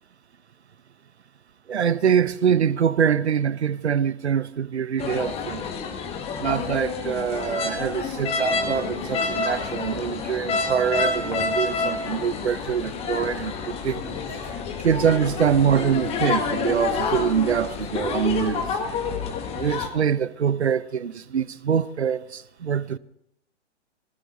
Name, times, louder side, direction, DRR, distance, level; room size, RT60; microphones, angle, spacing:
voice 1, 1.7-5.6 6.4-14.1 14.8-18.7 19.5-23.0, right 7 dB, 70° right, 0.8 m, -24 dB
sound 1, 5.0-19.9, left 4 dB, 15° left, 1.4 m, -28 dB
18.5 x 16.5 x 3.9 m
figure-of-eight pair, 120°, 35 cm